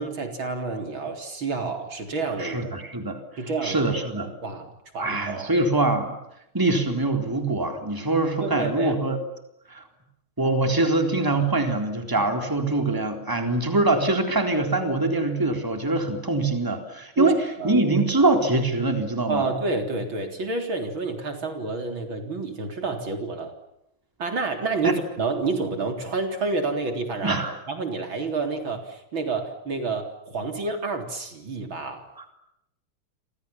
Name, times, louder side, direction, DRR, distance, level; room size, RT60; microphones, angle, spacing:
voice 1, 0.0-2.6 3.4-3.9 4.2-5.5 8.4-9.0 17.2-17.3 17.6-17.8 19.3-23.5 24.2-27.4 27.7-32.0, right 3 dB, 60° right, 5 dB, 4.5 m, -29 dB
voice 2, 2.4-3.2 3.6-4.3 5.0-6.1 6.5-9.2 9.7-9.8 10.4-17.4 17.6-19.5 24.8-24.9 27.2-27.6 32.2-32.3, right 2 dB, 10° right, 5 dB, 3.9 m, -23 dB
30.0 x 26.0 x 7.3 m, 0.82 s
omnidirectional pair, 2.4 m